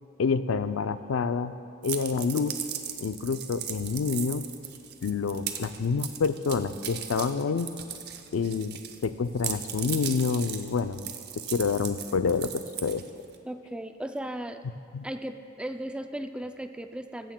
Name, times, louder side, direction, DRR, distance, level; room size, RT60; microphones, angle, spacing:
voice 1, 0.2-1.5 1.8-2.5 3.0-4.4 5.0-7.7 8.3-11.1 11.5-13.0 14.9-15.1, left 5 dB, 90° left, 12 dB, 0.4 m, -28 dB
sound 1, 1.8-9.1 9.4-13.3, right 9 dB, 55° right, 0.7 m, -37 dB
voice 2, 13.4-14.6 15.0-17.3, right 1 dB, 5° right, 8 dB, 0.3 m, -36 dB
15.0 x 14.5 x 2.2 m, 2.5 s
head